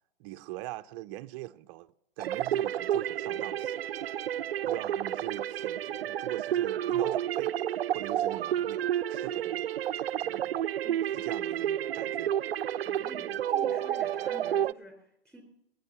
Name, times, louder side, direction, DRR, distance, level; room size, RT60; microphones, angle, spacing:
voice 1, 0.2-1.9 2.2-3.8 4.7-7.6 7.9-9.7 10.2-10.6 11.2-12.3, right 17 dB, 35° right, 0.6 m, -41 dB
sound 1, 2.2-14.7, right 11 dB, 85° right, 0.5 m, -30 dB
voice 2, 12.8-15.4, equal, ahead, 4.3 m, -49 dB
20.0 x 9.4 x 7.0 m
hypercardioid pair, 125°, 29 cm